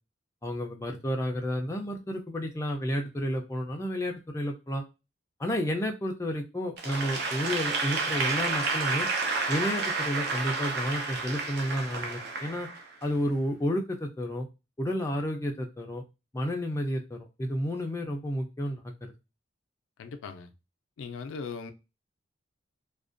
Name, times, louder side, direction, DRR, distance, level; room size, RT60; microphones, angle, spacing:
voice 1, 0.4-4.8 5.4-9.1 9.5-12.7 13.0-14.5 14.8-16.0 16.3-19.1, equal, 15° left, 0.3 m, -31 dB
Applause / Crowd, 6.8-13.2, right 3 dB, 55° right, 0.5 m, -30 dB
voice 2, 20.0-20.5 21.0-21.7, left 5 dB, 90° left, 0.4 m, -39 dB
2.4 x 2.1 x 2.4 m
head